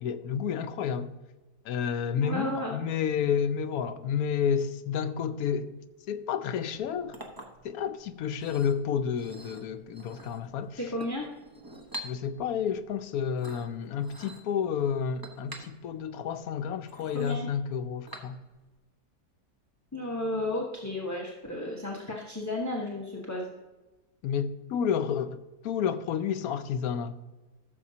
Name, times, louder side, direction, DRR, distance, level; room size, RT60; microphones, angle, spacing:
voice 1, 0.0-1.1 1.6-5.7 6.1-7.2 7.6-10.8 12.0-18.4 24.2-27.2, left 7 dB, 70° left, 1.0 m, -30 dB
voice 2, 2.2-2.8 10.8-11.3 17.1-17.5 19.9-23.5, left 1 dB, 15° left, 0.8 m, -33 dB
Chink clink, 6.7-18.7, equal, 15° right, 0.8 m, -48 dB
15.0 x 7.0 x 2.8 m
omnidirectional pair, 1.8 m